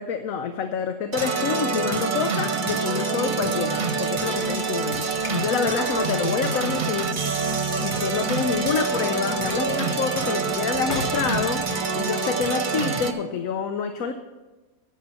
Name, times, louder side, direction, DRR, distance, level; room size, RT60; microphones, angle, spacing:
voice 1, 0.0-7.2 7.8-14.1, left 6 dB, 85° left, 8 dB, 1.1 m, -27 dB
sound 1, 1.1-13.1, right 4 dB, 40° right, 1.0 m, -26 dB
Train / Sliding door, 3.2-12.5, left 3 dB, 35° left, 1.1 m, -42 dB
12.0 x 7.6 x 6.9 m, 1.2 s
omnidirectional pair, 1.4 m